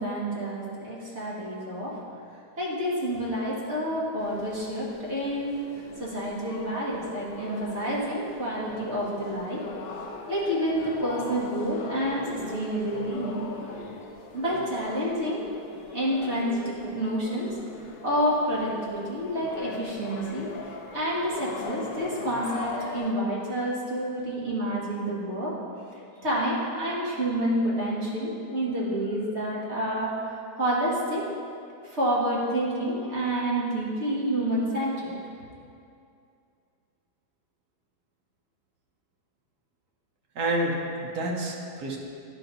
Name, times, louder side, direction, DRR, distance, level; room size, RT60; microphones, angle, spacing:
voice 1, 0.0-2.0 2.6-5.6 6.0-9.6 10.3-13.4 14.3-15.5 15.9-17.5 18.0-20.5 20.9-25.6 26.2-31.2 31.8-35.1, equal, 40° right, -6 dB, 1.7 m, -28 dB
sound 1, 4.2-23.1, left 3 dB, 70° left, 0.5 m, -40 dB
voice 2, 40.3-42.0, right 1 dB, 65° right, -1 dB, 1.5 m, -29 dB
11.5 x 4.5 x 3.9 m, 2.5 s
omnidirectional pair, 1.8 m